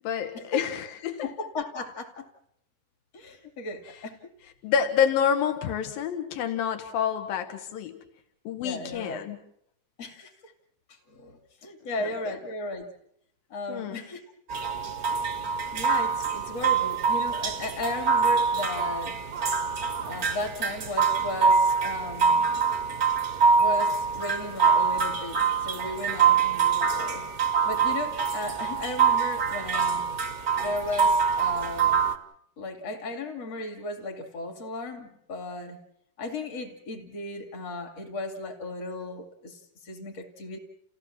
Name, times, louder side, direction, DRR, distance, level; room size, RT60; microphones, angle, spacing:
voice 1, 0.0-1.3 4.6-8.0 8.4-9.4 13.7-14.0, left 8 dB, 90° left, 7 dB, 3.3 m, -28 dB
voice 2, 1.2-2.3 3.1-4.3 8.6-9.2 10.0-10.5 10.9-12.9 13.5-14.2 15.7-19.2 20.1-22.5 23.6-27.3 27.7-30.0 30.6-32.0 32.6-35.8 36.2-40.6, left 2 dB, 50° left, 4 dB, 3.4 m, -35 dB
sound 1, 14.5-32.1, right 5 dB, 65° right, 0.8 m, -25 dB
29.5 x 16.5 x 7.5 m, 0.74 s
omnidirectional pair, 4.0 m